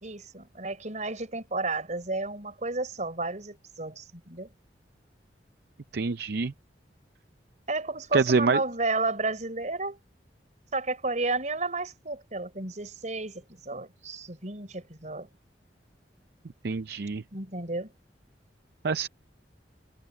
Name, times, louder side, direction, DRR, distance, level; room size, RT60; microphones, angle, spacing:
voice 1, 0.0-4.5 7.7-10.0 10.7-15.3 17.3-17.9, right 3 dB, 45° right, 4.9 m, -32 dB
voice 2, 5.9-6.5 8.1-8.6 16.6-17.2 18.8-19.1, right 4 dB, 65° right, 0.5 m, -25 dB
head